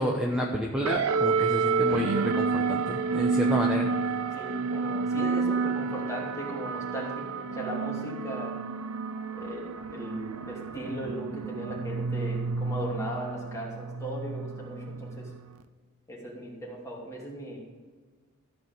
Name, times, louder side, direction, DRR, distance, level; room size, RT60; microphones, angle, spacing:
voice 1, 0.0-3.9, equal, 5° right, -1 dB, 0.9 m, -30 dB
sound 1, 0.8-15.6, right 4 dB, 70° right, 0.6 m, -30 dB
voice 2, 4.3-8.5 9.3-15.3 16.1-17.6, right 1 dB, 15° left, -4 dB, 2.8 m, -37 dB
14.0 x 4.9 x 7.9 m, 1.5 s
head